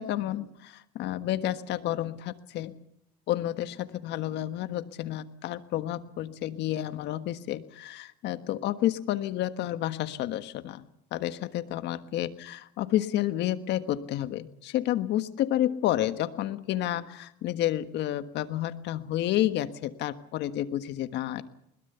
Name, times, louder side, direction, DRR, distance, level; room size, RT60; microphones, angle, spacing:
voice 1, 0.0-2.7 3.3-10.8 11.1-21.4, left 13 dB, 65° left, 11 dB, 1.4 m, -30 dB
21.5 x 21.0 x 7.0 m, 0.75 s
supercardioid pair, 95°, 19 cm